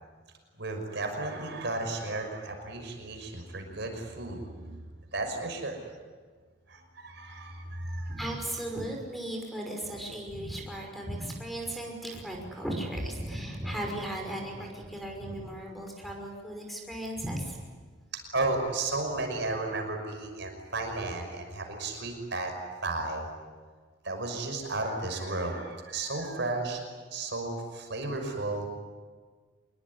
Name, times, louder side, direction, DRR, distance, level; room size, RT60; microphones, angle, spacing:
voice 1, 0.6-4.8 5.1-5.8 6.7-8.2 18.3-22.5 22.8-23.3 24.0-26.8 27.1-28.7, right 2 dB, 60° right, 4 dB, 5.9 m, -33 dB
voice 2, 8.0-17.6, right 1 dB, ahead, 1 dB, 5.7 m, -36 dB
26.5 x 22.5 x 9.9 m, 1.5 s
head